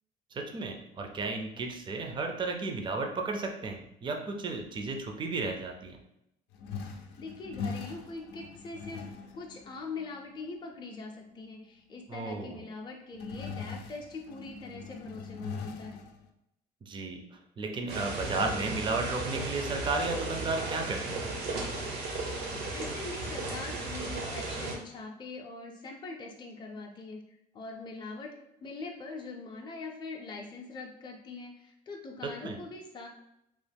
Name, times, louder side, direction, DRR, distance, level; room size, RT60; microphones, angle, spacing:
voice 1, 0.3-6.0 12.1-12.6 16.8-17.2 17.6-21.3 32.4-32.6, right 3 dB, 30° right, 3 dB, 0.5 m, -33 dB
sound 1, 6.5-10.3 11.3-11.4 13.1-16.3, left 5 dB, 85° left, 0.4 m, -41 dB
voice 2, 6.8-9.1 9.3-16.0 22.4-28.3 28.6-33.1, left 3 dB, 25° left, 0 dB, 0.5 m, -42 dB
sound 2, 17.9-24.7, right 2 dB, 75° right, 0.8 m, -35 dB
3.0 x 2.0 x 3.4 m, 0.83 s
cardioid pair, 110°, 17 cm